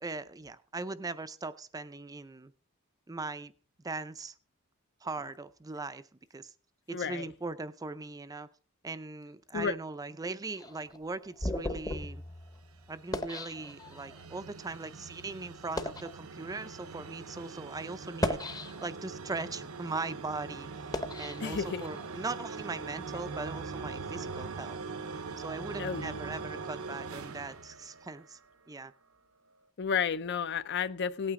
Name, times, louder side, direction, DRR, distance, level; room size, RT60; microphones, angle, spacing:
voice 1, 0.0-2.5 3.1-3.5 3.8-4.3 5.0-6.5 6.9-8.5 8.8-12.2 12.9-18.4 18.8-24.8 25.4-28.4 28.7-28.9, right 3 dB, 15° right, 13 dB, 0.5 m, -40 dB
voice 2, 6.9-7.3 9.5-9.7 21.4-21.8 25.8-26.2 29.8-31.3, left 6 dB, 50° left, 15 dB, 0.5 m, -32 dB
sound 1, 10.5-14.3 14.9-15.1 15.6-16.1 16.9-17.1 18.0-19.1 19.6-22.1, left 1 dB, 15° left, 0.8 m, -37 dB
sound 2, 12.4-28.5, right 4 dB, 80° right, 0.9 m, -42 dB
17.5 x 8.9 x 3.7 m, 0.39 s
head